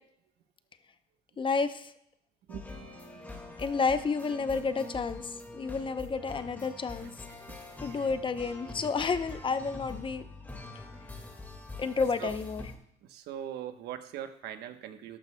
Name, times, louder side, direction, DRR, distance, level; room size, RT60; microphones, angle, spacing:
voice 1, 1.4-1.9 3.6-7.1 7.8-10.2 11.8-12.6, left 4 dB, 30° left, 11 dB, 0.6 m, -30 dB
sound 1, 2.5-12.8, left 2 dB, 10° left, 1.8 m, -45 dB
voice 2, 2.5-3.2 7.0-7.6 7.8-8.1 12.2-12.3 13.0-15.2, right 10 dB, 80° right, 8 dB, 1.0 m, -42 dB
14.0 x 11.0 x 2.2 m, 0.73 s
cardioid pair, 110°, 17 cm